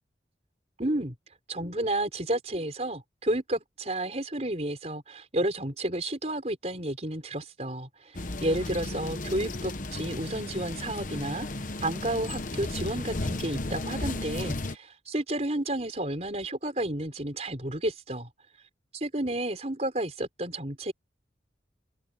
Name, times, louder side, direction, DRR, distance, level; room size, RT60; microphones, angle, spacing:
voice 1, 0.8-1.1 1.5-11.5 11.8-18.3 18.9-20.9, right 1 dB, 35° right, 5.0 m, -31 dB
sound 1, 8.1-14.8, left 2 dB, 45° left, 1.1 m, -34 dB
open air
head